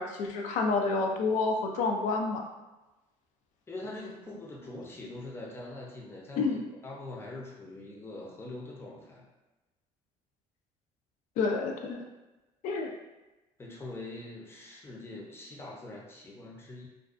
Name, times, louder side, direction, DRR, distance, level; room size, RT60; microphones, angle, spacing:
voice 1, 0.0-2.4 6.4-6.6 11.4-12.0 12.6-12.9, left 4 dB, 75° left, 2 dB, 0.5 m, -29 dB
voice 2, 3.7-9.2 13.6-16.9, left 2 dB, 20° left, -2 dB, 0.6 m, -43 dB
2.5 x 2.2 x 2.4 m, 1.1 s
cardioid pair, 105°, 13 cm